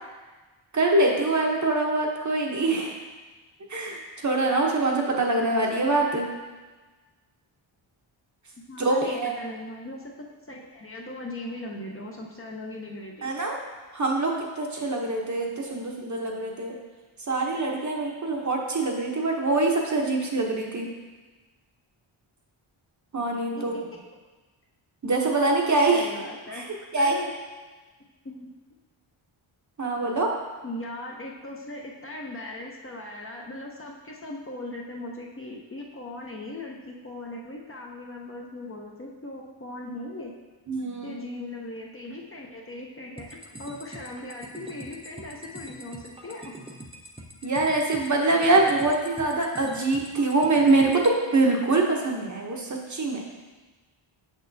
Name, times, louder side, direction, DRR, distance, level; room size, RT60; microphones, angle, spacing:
voice 1, 0.7-3.0 3.7-6.3 8.8-9.3 13.2-13.6 13.9-16.7 17.2-20.9 23.1-23.7 25.0-26.1 26.5-27.2 29.8-30.3 40.7-41.2 47.4-50.9 51.3-53.2, right 2 dB, 35° right, 0 dB, 0.8 m, -24 dB
voice 2, 8.7-13.3 23.6-23.7 25.9-27.3 28.2-28.5 30.6-40.3 41.0-46.5, left 2 dB, 25° left, -1 dB, 0.7 m, -39 dB
sound 1, 43.2-51.2, right 1 dB, 10° right, 0.5 m, -44 dB
6.5 x 6.2 x 2.7 m, 1.3 s
wide cardioid pair, 120°, 50 cm